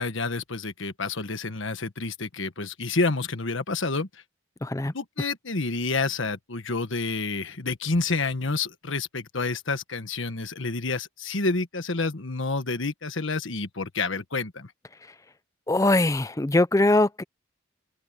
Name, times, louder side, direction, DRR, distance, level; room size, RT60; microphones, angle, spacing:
voice 1, 0.0-4.1 4.9-14.7, left 3 dB, 70° left, 1.4 m, -29 dB
voice 2, 4.6-4.9 15.7-17.2, left 2 dB, 15° left, 0.4 m, -21 dB
head